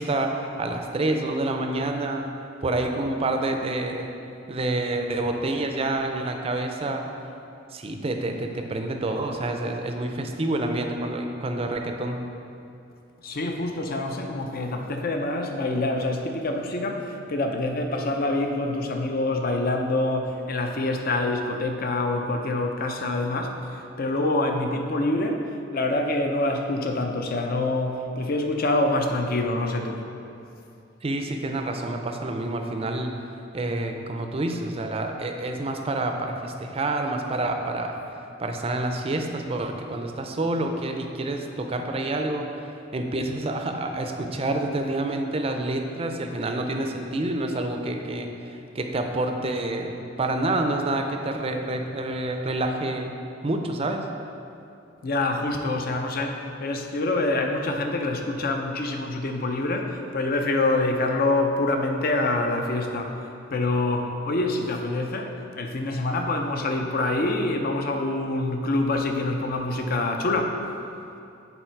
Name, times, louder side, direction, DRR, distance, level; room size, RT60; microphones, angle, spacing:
voice 1, 0.0-2.3 2.6-4.1 4.5-7.1 7.7-12.2 31.0-33.1 33.5-38.0 38.4-42.5 42.9-53.1 53.4-54.1, right 2 dB, 30° right, 4 dB, 0.5 m, -28 dB
voice 2, 13.2-30.0 55.0-70.6, left 2 dB, 50° left, 4 dB, 0.6 m, -26 dB
7.1 x 4.0 x 4.5 m, 2.6 s
head